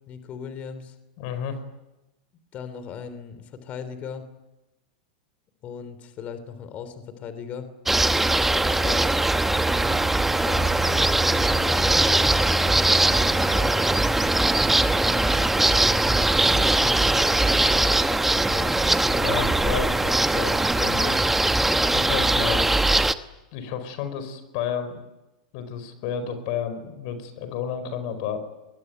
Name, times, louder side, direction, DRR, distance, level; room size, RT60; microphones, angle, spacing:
voice 1, 0.1-1.0 2.5-4.3 5.6-7.7 8.5-9.1 9.8-10.1 10.4-13.8 15.3-18.7, left 6 dB, 35° left, 11 dB, 3.4 m, -38 dB
voice 2, 1.2-1.6 19.1-21.2 21.9-22.7 23.5-25.0 25.5-28.4, left 8 dB, 55° left, 10 dB, 4.7 m, -31 dB
sound 1, 7.9-23.1, right 2 dB, 5° right, 1.0 m, -21 dB
27.0 x 22.0 x 9.4 m, 1.0 s
supercardioid pair, 130°, 4 cm